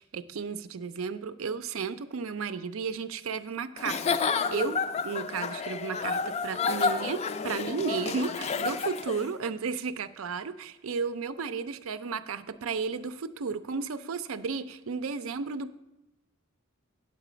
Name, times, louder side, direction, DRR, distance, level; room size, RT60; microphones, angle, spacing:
voice 1, 0.1-15.8, right 5 dB, 80° right, 12 dB, 0.5 m, -33 dB
Giggle / Chuckle chortle, 3.8-9.3, left 5 dB, 30° left, 0.3 m, -30 dB
8.3 x 8.0 x 5.0 m, 0.94 s
head